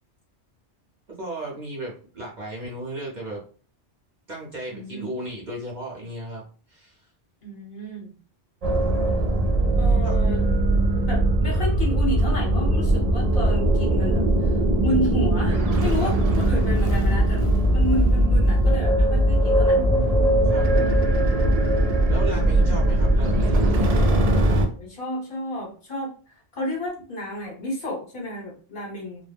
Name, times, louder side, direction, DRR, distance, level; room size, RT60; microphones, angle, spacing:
voice 1, 1.2-3.4 4.3-6.4 6.7-7.0 10.0-10.2 16.0-16.1 20.5-21.1 22.1-23.6, right 1 dB, 45° right, -4 dB, 0.9 m, -35 dB
voice 2, 4.7-5.1 7.4-8.1 9.8-10.4 11.0-20.0 22.6-22.7 24.8-29.2, equal, 55° left, -2 dB, 1.1 m, -31 dB
sound 1, 8.6-24.7, right 1 dB, 65° right, 0.3 m, -20 dB
2.3 x 2.0 x 3.3 m, 0.41 s
omnidirectional pair, 1.2 m